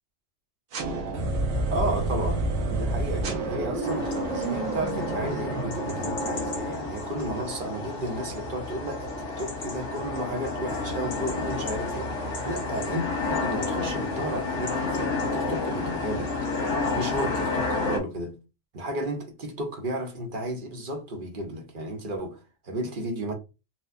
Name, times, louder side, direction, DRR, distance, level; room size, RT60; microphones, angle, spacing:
sound 1, 0.7-6.7, right 2 dB, 90° right, 1.1 m, -29 dB
voice 1, 1.7-2.4 2.7-16.5 16.9-18.4 18.7-23.3, right 1 dB, 50° right, 0.9 m, -33 dB
sound 2, 3.8-18.0, left 3 dB, 80° left, 1.5 m, -30 dB
4.2 x 2.1 x 2.6 m
omnidirectional pair, 1.2 m